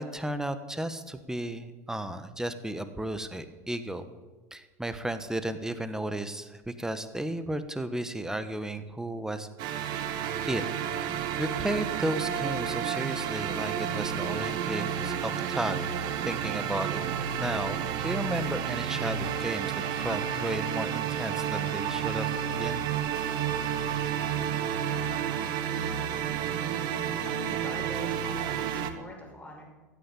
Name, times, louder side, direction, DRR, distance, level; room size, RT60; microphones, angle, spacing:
voice 1, 0.0-4.0 4.5-9.5 10.5-10.6 11.1-15.9 16.2-17.0 17.4-17.8 18.0-22.8, right 1 dB, 5° right, 11 dB, 1.4 m, -34 dB
sound 1, 9.6-28.9, right 8 dB, 50° right, 1.4 m, -31 dB
voice 2, 27.2-29.6, left 1 dB, 15° left, -1 dB, 6.4 m, -44 dB
15.0 x 9.3 x 8.6 m, 1.3 s
hypercardioid pair, 85°, 9 cm